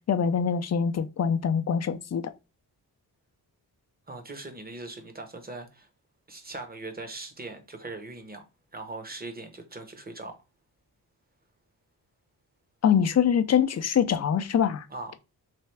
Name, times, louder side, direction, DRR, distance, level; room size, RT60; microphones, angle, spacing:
voice 1, 0.1-2.2 12.8-14.8, left 7 dB, 45° left, 0.5 m, -24 dB
voice 2, 4.1-5.9 6.3-8.4 8.7-10.3 14.9-15.2, right 2 dB, 25° right, 0.9 m, -40 dB
3.5 x 3.3 x 3.2 m
wide cardioid pair, 110°, 39 cm